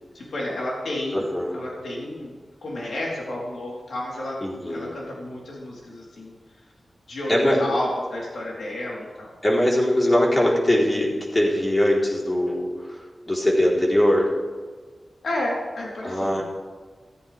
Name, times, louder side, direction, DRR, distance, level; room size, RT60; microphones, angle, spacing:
voice 1, 0.1-2.3 2.6-4.4 4.7-6.3 7.1-9.3 15.2-16.4, left 1 dB, 85° left, -4 dB, 3.9 m, -31 dB
voice 2, 1.1-1.6 4.4-4.9 7.3-7.6 9.4-13.0 13.3-14.3 16.0-16.4, left 1 dB, 25° left, -3 dB, 4.0 m, -21 dB
15.0 x 14.5 x 3.6 m, 1.4 s
wide cardioid pair, 85°, 0 cm